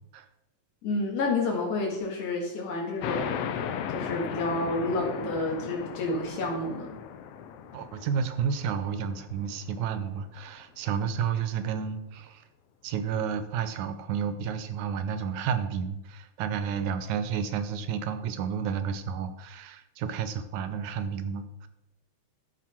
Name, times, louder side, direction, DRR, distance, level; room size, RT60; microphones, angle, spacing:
voice 1, 0.8-7.0, left 2 dB, 60° left, 0 dB, 2.9 m, -30 dB
sound 1, 3.0-10.2, left 8 dB, 80° left, 1.4 m, -37 dB
voice 2, 7.7-12.4 12.8-21.7, right 7 dB, 85° right, 10 dB, 2.1 m, -31 dB
13.5 x 4.8 x 4.5 m, 0.94 s
omnidirectional pair, 3.4 m